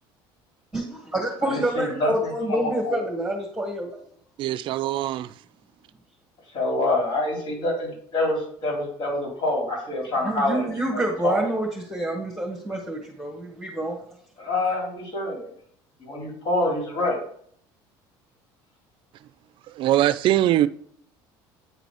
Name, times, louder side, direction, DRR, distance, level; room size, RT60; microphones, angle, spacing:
voice 1, 0.7-3.9 10.3-14.0, right 1 dB, 5° right, 1.6 m, -27 dB
voice 2, 1.4-2.9 6.5-11.3 14.4-15.5 16.0-17.2, left 2 dB, 50° left, 3.6 m, -26 dB
voice 3, 4.4-5.3 19.7-20.7, right 13 dB, 55° right, 0.4 m, -22 dB
8.9 x 3.9 x 4.9 m
supercardioid pair, 110°, 10 cm